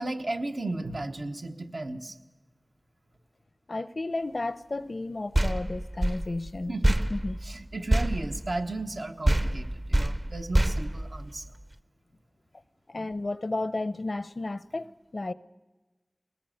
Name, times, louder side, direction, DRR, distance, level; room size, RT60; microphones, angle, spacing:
voice 1, 0.0-2.2 6.7-6.9 7.4-11.5, right 2 dB, 85° right, 1.2 m, -34 dB
voice 2, 3.7-6.7 7.1-7.4 12.9-15.3, left 2 dB, 80° left, 0.6 m, -33 dB
sound 1, 5.3-9.0 9.2-11.7, right 1 dB, 40° right, 0.7 m, -27 dB
20.5 x 19.0 x 7.8 m
wide cardioid pair, 55°, 0 cm